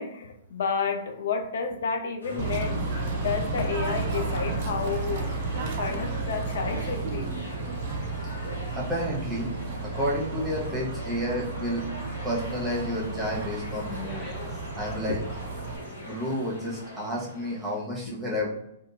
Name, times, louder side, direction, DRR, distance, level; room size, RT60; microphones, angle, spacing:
voice 1, 0.0-2.9 3.2-5.3 5.8-7.3 15.1-15.2, left 5 dB, 65° left, 6 dB, 0.3 m, -30 dB
sound 1, 2.2-17.8, equal, 85° left, 1.0 m, -40 dB
Bird / Train, 2.4-15.8, right 3 dB, 45° right, 0.4 m, -33 dB
voice 2, 8.7-9.5 9.9-11.9 12.2-14.3 14.7-15.2 15.9-18.5, equal, 10° right, -5 dB, 0.9 m, -30 dB
Speech, 13.4-17.6, left 2 dB, 15° left, 0.7 m, -47 dB
2.7 x 2.3 x 2.4 m, 0.81 s
figure-of-eight pair, 115°, 0 cm